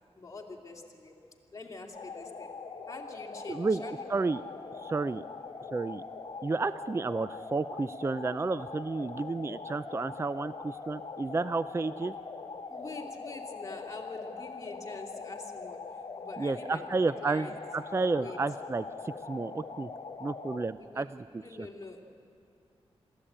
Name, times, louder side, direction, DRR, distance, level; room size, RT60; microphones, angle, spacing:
voice 1, 0.1-1.2 1.5-2.6 2.9-4.0 12.7-16.9 17.2-17.5 18.0-18.4 20.8-21.0 21.4-22.0, left 3 dB, 30° left, 0 dB, 2.8 m, -45 dB
sound 1, 1.9-20.7, left 4 dB, 65° left, 1.5 m, -42 dB
voice 2, 3.5-3.8 4.1-4.4 4.8-5.2 5.7-6.0 6.4-12.1 16.4-19.9 20.2-21.2 21.6-21.7, right 3 dB, 25° right, 14 dB, 0.4 m, -31 dB
21.5 x 15.0 x 8.7 m, 2.6 s
cardioid pair, 70°, 11 cm